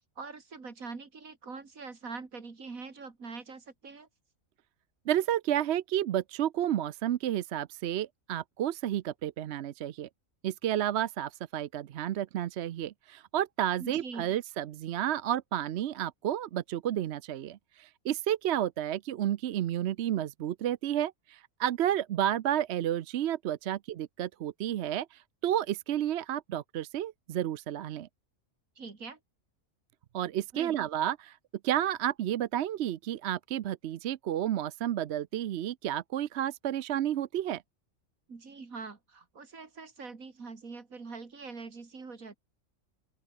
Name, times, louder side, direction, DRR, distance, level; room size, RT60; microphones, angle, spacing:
voice 1, 0.2-4.1 13.8-14.3 28.8-29.2 30.5-30.8 38.3-42.4, right 4 dB, 85° right, 3.1 m, -43 dB
voice 2, 5.1-10.1 10.4-28.1 30.1-31.4 31.6-37.6, right 11 dB, 60° right, 0.8 m, -31 dB
open air
omnidirectional pair, 1.4 m